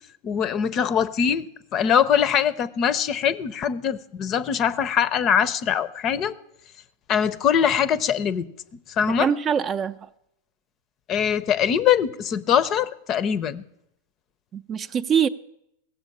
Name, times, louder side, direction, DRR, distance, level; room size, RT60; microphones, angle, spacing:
voice 1, 0.2-1.5 1.7-6.3 7.1-8.5 9.0-9.3 11.1-13.6, left 8 dB, 35° left, 0.7 m, -22 dB
voice 2, 9.2-10.1 14.5-15.3, right 7 dB, 30° right, 0.5 m, -23 dB
16.0 x 7.1 x 8.4 m
hypercardioid pair, 125°, 0 cm